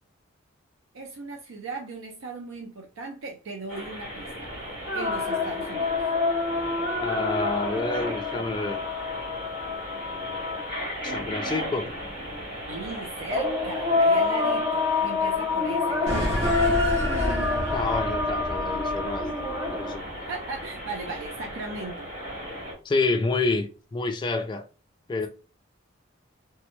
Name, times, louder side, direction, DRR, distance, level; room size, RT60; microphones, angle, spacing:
voice 1, 0.9-5.9 12.7-16.4 20.2-22.1, right 3 dB, 85° right, 0.5 m, -38 dB
sound 1, 3.7-22.7, equal, 45° right, 1.6 m, -37 dB
sound 2, 4.9-11.1 13.3-20.0, left 3 dB, 25° right, 0.7 m, -27 dB
voice 2, 7.0-8.8 10.1-10.4 11.0-11.9 17.7-19.3 19.6-20.0 22.8-24.7 25.1-25.3, left 3 dB, 20° left, 0.3 m, -28 dB
sound 3, 16.1-20.8, right 1 dB, 70° right, 0.9 m, -30 dB
3.3 x 2.0 x 3.0 m
head